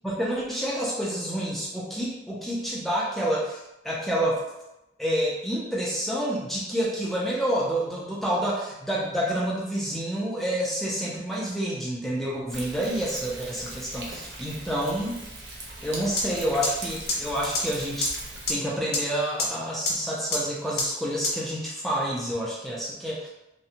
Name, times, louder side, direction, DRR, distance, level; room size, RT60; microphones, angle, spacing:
voice 1, 0.0-4.4 5.0-15.2 15.8-18.1 18.5-23.3, equal, ahead, -6 dB, 0.4 m, -28 dB
Thunder, 12.5-18.5, right 2 dB, 80° right, 0.6 m, -40 dB
sound 1, 16.2-16.3 16.6-16.7 17.1-17.2 17.5-17.6 18.0-18.1 18.5-18.6 18.9-19.0 19.4-19.5 19.9-20.0 20.3-20.4 20.8-20.9 21.2-21.3, left 3 dB, 65° left, 0.6 m, -24 dB
2.6 x 2.1 x 2.7 m, 0.90 s
head